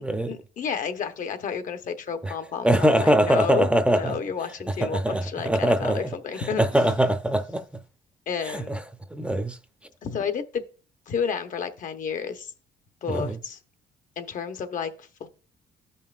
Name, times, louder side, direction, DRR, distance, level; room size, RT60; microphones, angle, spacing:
voice 1, 0.3-6.6 8.3-8.8 10.0-10.6 11.1-12.5 13.0-13.6 14.2-15.3, left 6 dB, 50° left, 0.9 m, -31 dB
voice 2, 2.6-4.1 4.8-6.1 6.4-7.6 8.5-8.8 9.1-9.6 13.1-13.4, right 1 dB, 5° right, 0.6 m, -22 dB
13.5 x 5.5 x 2.4 m
cardioid pair, 110°, 17 cm